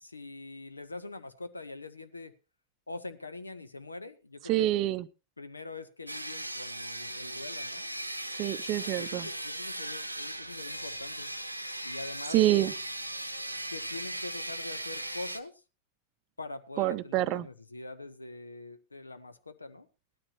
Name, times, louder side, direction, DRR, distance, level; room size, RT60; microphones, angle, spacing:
voice 1, 0.0-2.3 2.9-4.7 5.4-7.9 9.0-11.3 11.8-12.4 13.7-15.6 16.4-19.9, left 3 dB, 80° left, 0.9 m, -43 dB
voice 2, 4.5-5.1 8.4-9.3 12.3-12.7 16.8-17.5, right 15 dB, 40° right, 0.6 m, -26 dB
sound 1, 6.1-15.4, right 1 dB, 90° right, 0.8 m, -38 dB
18.0 x 12.5 x 2.8 m
figure-of-eight pair, 90°, 0 cm